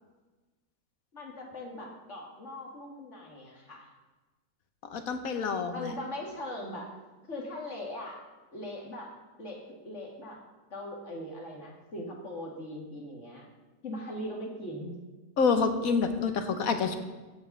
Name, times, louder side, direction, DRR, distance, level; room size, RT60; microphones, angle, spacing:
voice 1, 1.1-3.9 5.7-6.9 7.3-8.2 8.5-9.1 9.4-10.4 10.7-13.5 13.8-14.9, left 1 dB, 50° left, 0 dB, 2.2 m, -40 dB
voice 2, 4.9-5.9 15.4-17.0, left 5 dB, 70° left, 7 dB, 1.4 m, -27 dB
15.0 x 5.4 x 7.1 m, 1.2 s
omnidirectional pair, 1.6 m